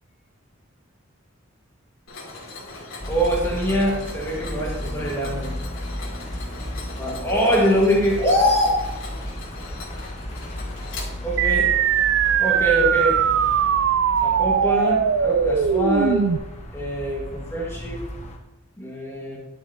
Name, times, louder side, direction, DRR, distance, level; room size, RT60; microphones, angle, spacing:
Mechanisms, 2.1-11.6, left 3 dB, 75° left, 3.1 m, -40 dB
sound 1, 3.0-18.4, equal, 35° left, 1.2 m, -34 dB
voice 1, 3.1-5.5 7.0-8.8 11.2-11.7 12.4-13.2 14.2-16.3 16.7-18.0 18.8-19.4, equal, 15° left, -3 dB, 1.7 m, -23 dB
sound 2, 11.4-16.4, right 8 dB, 65° right, 0.3 m, -20 dB
11.5 x 7.0 x 2.8 m, 1.0 s
head